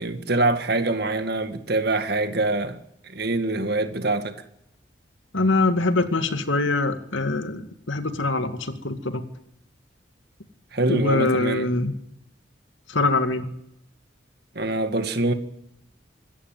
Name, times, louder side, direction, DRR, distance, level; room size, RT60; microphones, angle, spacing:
voice 1, 0.0-2.8 3.0-4.3 10.7-11.7 14.6-15.3, right 2 dB, 55° right, 2.0 m, -24 dB
voice 2, 5.3-9.2 10.9-11.9 12.9-13.5, left 2 dB, 80° left, 2.2 m, -23 dB
26.0 x 13.5 x 9.1 m
head